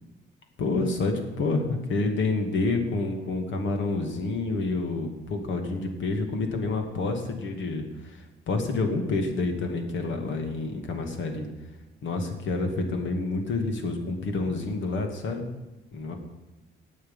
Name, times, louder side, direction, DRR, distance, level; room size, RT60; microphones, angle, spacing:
voice 1, 0.6-11.5 12.0-15.4 15.9-16.2, left 3 dB, 70° left, 4 dB, 2.4 m, -28 dB
18.5 x 6.6 x 5.6 m, 1.1 s
cardioid pair, 90°, 20 cm